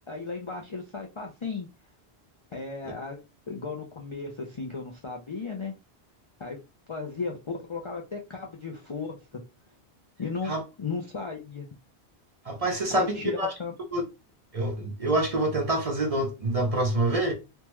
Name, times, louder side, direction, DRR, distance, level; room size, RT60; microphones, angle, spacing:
voice 1, 0.1-1.7 2.5-3.2 3.5-5.7 6.4-6.6 6.9-9.4 10.2-11.7 12.9-13.7, left 4 dB, 45° left, 0.4 m, -35 dB
voice 2, 12.5-13.5 13.9-14.0 14.5-17.3, right 1 dB, 40° right, 0.6 m, -26 dB
3.5 x 2.1 x 2.9 m
omnidirectional pair, 1.1 m